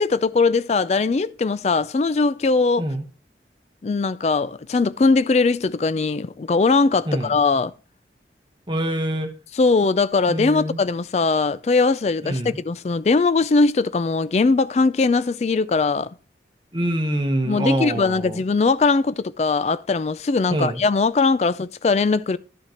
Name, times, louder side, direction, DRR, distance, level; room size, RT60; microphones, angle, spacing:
voice 1, 0.0-2.9 3.8-7.7 9.5-16.1 17.5-22.4, left 4 dB, 35° left, 0.3 m, -20 dB
voice 2, 7.1-7.4 8.7-9.3 10.3-10.8 12.2-12.6 16.7-18.4 20.5-20.8, right 1 dB, 25° right, 0.9 m, -25 dB
13.0 x 5.8 x 2.9 m
head